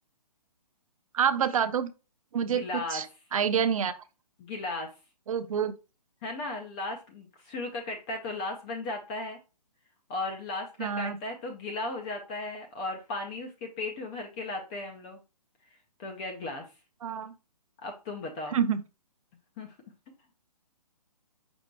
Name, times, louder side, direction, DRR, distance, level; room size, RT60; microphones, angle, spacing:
voice 1, 1.1-1.9 2.3-3.1 3.3-4.0 5.3-5.7 10.8-11.2 17.0-17.3 18.5-18.8, right 7 dB, 55° right, 0.6 m, -27 dB
voice 2, 2.4-3.0 4.4-4.9 6.2-9.4 10.1-15.2 16.0-16.7 17.8-18.6 19.6-19.7, left 2 dB, 10° left, 0.3 m, -36 dB
5.2 x 2.2 x 4.5 m
hypercardioid pair, 150°, 21 cm